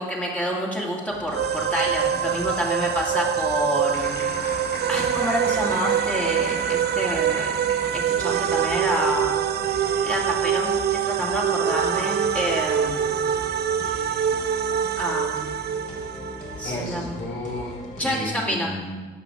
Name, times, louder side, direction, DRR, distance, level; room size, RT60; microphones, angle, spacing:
voice 1, 0.0-4.2 4.9-7.5 7.9-9.4 10.0-13.2 14.3-14.4 15.0-15.6 16.6-17.2 18.0-18.7, equal, 5° left, -4 dB, 2.3 m, -28 dB
sound 1, 1.1-18.0, left 2 dB, 40° left, 2.4 m, -39 dB
sound 2, 1.3-16.7, right 9 dB, 55° right, 0.5 m, -25 dB
sound 3, 3.9-8.6, left 2 dB, 55° left, 3.4 m, -38 dB
voice 2, 16.6-18.9, left 1 dB, 75° left, -4 dB, 3.6 m, -33 dB
12.0 x 5.1 x 6.3 m, 1.3 s
cardioid pair, 90°, 20 cm